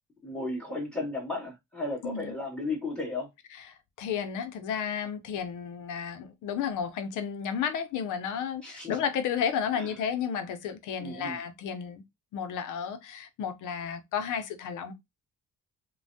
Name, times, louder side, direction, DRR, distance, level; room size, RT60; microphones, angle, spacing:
voice 1, 0.2-3.3 8.6-9.0 9.7-9.9 11.0-11.4, left 2 dB, 5° left, 1.8 m, -34 dB
voice 2, 2.0-2.3 4.0-12.0 12.3-14.9, left 7 dB, 85° left, 0.7 m, -32 dB
3.2 x 2.2 x 2.6 m
cardioid pair, 90°, 30 cm